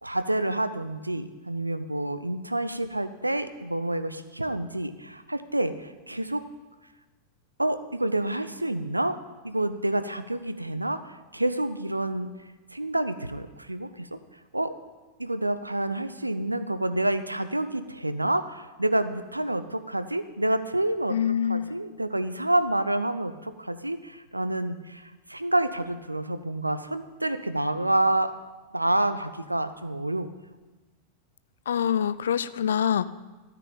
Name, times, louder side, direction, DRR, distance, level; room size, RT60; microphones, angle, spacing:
voice 1, 0.0-6.4 7.6-9.2 9.4-12.3 12.7-14.2 14.5-14.7 15.2-21.2 21.5-28.3 28.7-30.3, right 1 dB, 85° right, 11 dB, 0.7 m, -28 dB
voice 2, 21.1-21.7 31.7-33.1, left 8 dB, 65° left, 16 dB, 0.4 m, -25 dB
13.0 x 5.8 x 8.8 m, 1.2 s
figure-of-eight pair, 90°, 0 cm